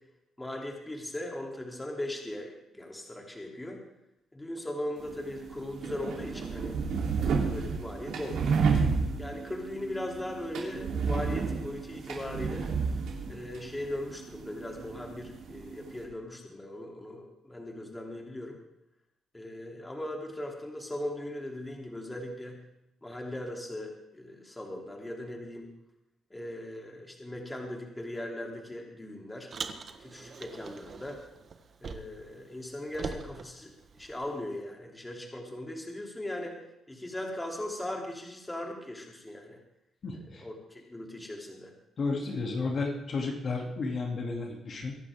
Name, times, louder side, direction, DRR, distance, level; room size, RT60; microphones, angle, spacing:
voice 1, 0.4-3.8 4.3-6.8 7.2-8.6 9.2-12.7 13.3-18.6 19.3-22.6 23.0-25.7 26.3-29.5 30.0-31.2 31.8-36.6 36.9-39.6 40.3-41.7, left 1 dB, 15° left, 0 dB, 3.0 m, -39 dB
sound 1, 5.0-16.0, right 5 dB, 75° right, 3.4 m, -32 dB
Car, 29.5-32.3 32.6-34.4, right 5 dB, 50° right, 1.3 m, -42 dB
voice 2, 40.0-40.4 42.0-45.0, left 3 dB, 50° left, 0 dB, 2.7 m, -32 dB
23.0 x 11.0 x 3.7 m, 0.86 s
cardioid pair, 90°, 0 cm